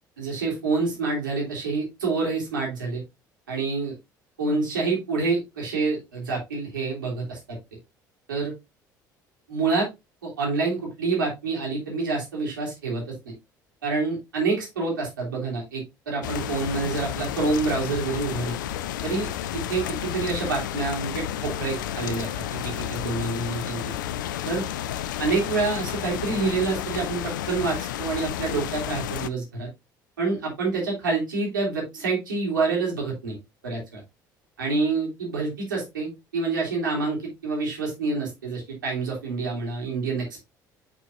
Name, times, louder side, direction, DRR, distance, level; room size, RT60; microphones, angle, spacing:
voice 1, 0.2-3.0 3.5-3.9 4.4-7.6 8.3-8.5 9.5-9.9 10.2-13.1 13.8-18.6 19.0-23.9 24.4-24.6 25.2-29.7 30.2-33.4 33.6-34.0 34.6-40.4, right 4 dB, 85° right, -3 dB, 3.1 m, -27 dB
sound 1, 16.2-29.3, left 11 dB, 75° left, 0.4 m, -31 dB
9.2 x 4.6 x 2.7 m, 0.22 s
figure-of-eight pair, 60°, 10 cm